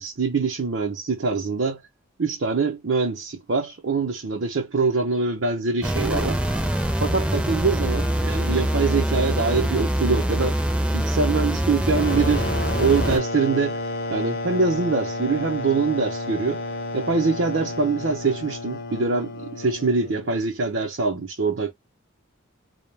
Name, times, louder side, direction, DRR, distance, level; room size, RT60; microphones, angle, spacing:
voice 1, 0.0-1.8 2.2-6.4 7.0-10.6 10.9-12.5 12.8-13.8 14.1-16.6 16.9-21.7, right 4 dB, 65° right, 0.7 m, -24 dB
sound 1, 5.8-13.2, equal, 5° right, 0.4 m, -24 dB
sound 2, 11.9-20.4, left 2 dB, 50° left, 0.5 m, -31 dB
2.3 x 2.2 x 3.2 m
head